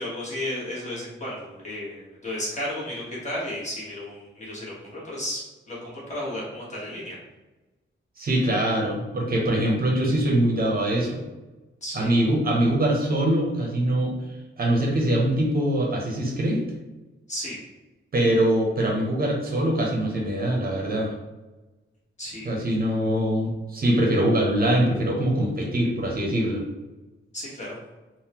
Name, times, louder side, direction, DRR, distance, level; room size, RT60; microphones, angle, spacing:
voice 1, 0.0-7.2 11.8-12.1 17.3-17.6 22.2-22.8 27.3-27.8, left 1 dB, 35° left, -6 dB, 1.1 m, -33 dB
voice 2, 8.2-11.2 11.9-14.2 14.6-16.6 18.1-21.1 22.4-26.6, right 1 dB, 45° right, -1 dB, 0.6 m, -23 dB
3.6 x 2.1 x 2.8 m, 1.1 s
wide cardioid pair, 160°, 21 cm